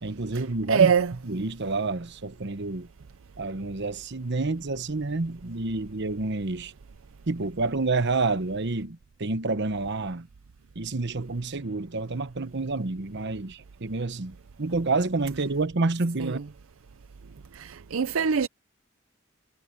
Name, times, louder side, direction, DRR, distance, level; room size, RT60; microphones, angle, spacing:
voice 1, 0.0-0.9 1.2-2.9 3.4-6.7 7.3-10.3 10.7-16.4, right 3 dB, 55° right, 1.0 m, -29 dB
voice 2, 0.7-1.1 16.2-16.3 17.5-18.5, right 7 dB, 80° right, 0.6 m, -23 dB
head